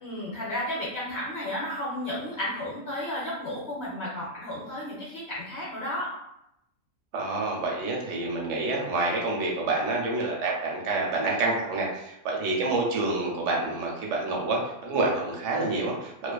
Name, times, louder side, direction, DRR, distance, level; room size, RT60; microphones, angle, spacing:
voice 1, 0.0-6.1, left 1 dB, 60° left, -6 dB, 0.7 m, -33 dB
voice 2, 7.1-16.3, right 2 dB, 70° right, -2 dB, 0.9 m, -28 dB
2.4 x 2.3 x 2.2 m, 0.83 s
omnidirectional pair, 1.5 m